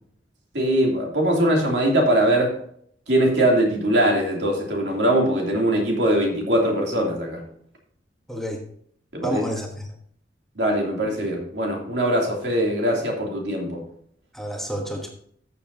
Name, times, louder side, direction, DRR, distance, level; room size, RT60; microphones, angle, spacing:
voice 1, 0.5-2.6 3.1-7.4 9.1-9.4 10.6-13.8, right 1 dB, 75° right, 0 dB, 2.8 m, -21 dB
voice 2, 8.3-8.6 9.2-9.9 14.3-15.1, equal, ahead, 1 dB, 1.1 m, -29 dB
14.0 x 7.0 x 2.8 m, 0.63 s
head